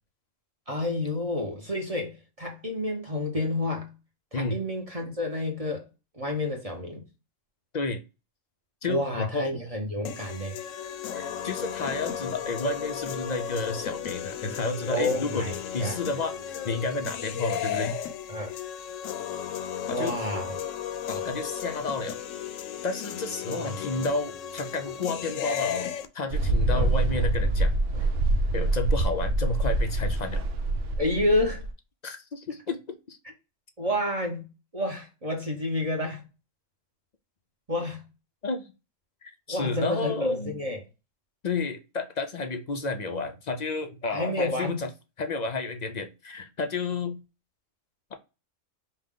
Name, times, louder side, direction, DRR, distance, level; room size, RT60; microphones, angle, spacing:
voice 1, 0.7-3.9 4.3-5.9 6.1-7.0 8.9-10.6 14.9-16.0 18.3-18.5 19.9-20.6 23.5-23.7 26.7-26.9 31.0-31.6 33.8-34.5 34.7-36.2 37.7-38.0 39.5-40.8 44.1-44.8, left 1 dB, 30° right, 0.9 m, -29 dB
voice 2, 8.8-9.5 11.1-18.0 19.9-20.2 21.1-22.2 22.8-27.7 28.5-30.4 32.0-33.2 38.4-38.6 39.2-40.5 41.4-44.9 45.2-47.2, left 3 dB, 55° left, 0.5 m, -31 dB
sound 1, 10.1-26.1, left 9 dB, 80° left, 1.0 m, -35 dB
Mechanical fan, 26.3-31.7, right 2 dB, 70° right, 1.0 m, -25 dB
5.4 x 2.3 x 3.6 m
omnidirectional pair, 1.3 m